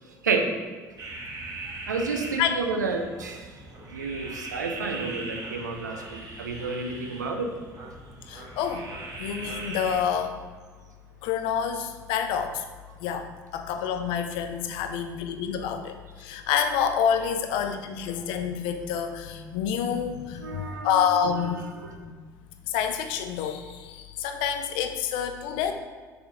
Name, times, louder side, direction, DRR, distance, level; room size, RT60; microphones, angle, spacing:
sound 1, 1.0-10.0, right 2 dB, 45° right, 1.6 m, -40 dB
voice 1, 1.9-3.6 3.9-7.5 20.4-21.1 21.8-21.9, right 4 dB, 90° right, 0.6 m, -30 dB
voice 2, 8.3-8.9 9.2-10.4 11.2-12.6 13.0-21.6 22.0-22.1 22.7-25.7, left 8 dB, 65° left, 0.7 m, -28 dB
6.9 x 3.6 x 4.9 m
hypercardioid pair, 60°, 9 cm